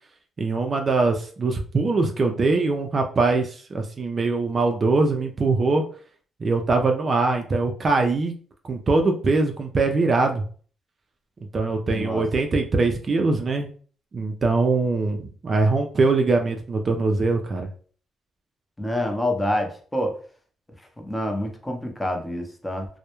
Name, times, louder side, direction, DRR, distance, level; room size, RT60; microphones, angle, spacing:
voice 1, 0.4-5.8 6.4-8.3 8.7-10.4 11.5-13.7 14.1-17.7, right 3 dB, 40° right, 4 dB, 0.3 m, -22 dB
voice 2, 11.9-12.2 18.8-20.2 21.0-22.9, left 1 dB, 10° left, 3 dB, 0.6 m, -27 dB
2.2 x 2.0 x 2.9 m, 0.43 s
cardioid pair, 90°, 0 cm